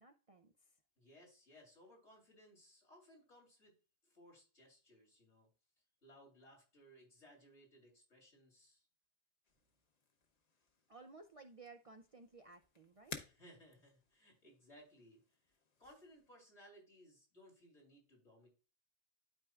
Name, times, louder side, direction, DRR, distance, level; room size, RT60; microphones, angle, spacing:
voice 1, 0.0-0.8 10.9-13.3, right 3 dB, 45° right, 6 dB, 0.4 m, -58 dB
voice 2, 1.0-3.8 4.0-5.5 6.0-8.9 13.2-15.2 15.8-18.5, equal, 80° left, -1 dB, 3.3 m, -63 dB
sound 1, 9.4-16.4, left 4 dB, 40° left, 0.9 m, -57 dB
12.0 x 4.5 x 2.4 m, 0.34 s
omnidirectional pair, 1.2 m